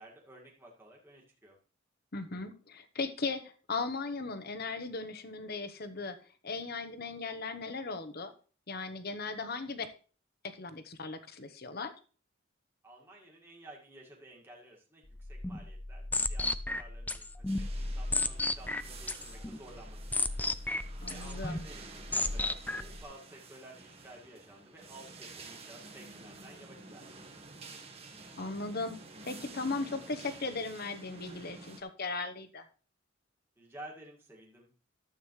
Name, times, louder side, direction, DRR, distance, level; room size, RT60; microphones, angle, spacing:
voice 1, 0.0-1.6 12.8-17.3 17.6-20.2 21.0-27.3 33.6-34.7, right 1 dB, 10° right, -3 dB, 2.0 m, -53 dB
voice 2, 2.1-6.2 6.4-8.3 8.7-9.9 10.4-11.9 21.0-21.6 28.4-29.0 29.2-32.6, left 3 dB, 50° left, 9 dB, 1.0 m, -37 dB
sound 1, 15.1-23.0, left 2 dB, 10° left, 0.4 m, -34 dB
sound 2, 17.5-31.8, right 3 dB, 30° right, 1.5 m, -50 dB
13.0 x 8.2 x 3.2 m, 0.39 s
head